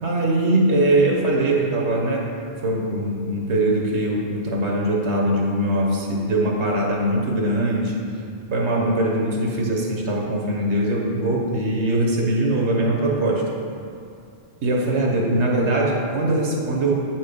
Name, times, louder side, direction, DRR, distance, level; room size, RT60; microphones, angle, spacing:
voice 1, 0.0-2.3 2.6-8.0 8.5-13.4 14.6-16.9, right 1 dB, 70° right, -1 dB, 1.5 m, -21 dB
8.7 x 4.6 x 5.2 m, 2.4 s
omnidirectional pair, 1.2 m